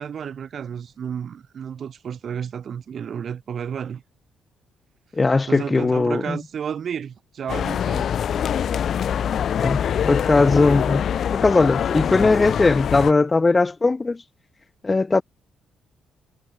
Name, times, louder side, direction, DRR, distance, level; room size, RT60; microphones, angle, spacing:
voice 1, 0.0-4.0 5.5-8.1, right 8 dB, 55° right, 5.1 m, -32 dB
voice 2, 5.1-6.4 9.5-14.2 14.8-15.2, left 3 dB, 25° left, 3.0 m, -19 dB
sound 1, 7.5-13.1, left 8 dB, 60° left, 5.8 m, -24 dB
cardioid pair, 90°, 0 cm